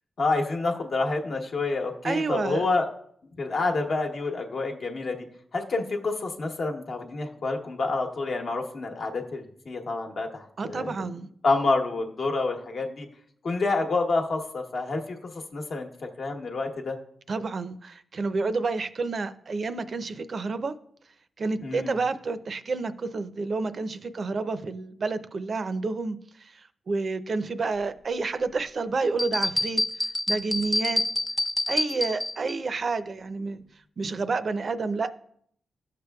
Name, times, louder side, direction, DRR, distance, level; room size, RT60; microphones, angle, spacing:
voice 1, 0.2-2.9 3.4-5.3 5.5-11.1 11.4-13.1 13.4-15.9 16.2-17.0 21.6-21.9, left 3 dB, 65° left, 1.0 m, -28 dB
voice 2, 2.0-2.6 10.6-11.3 17.3-20.7 21.4-29.8 30.3-31.0 31.7-33.6 34.0-35.1, right 3 dB, 55° right, 0.5 m, -29 dB
sound 1, 29.2-32.5, left 1 dB, 15° left, 0.5 m, -27 dB
12.0 x 6.7 x 2.3 m
cardioid pair, 90°, 0 cm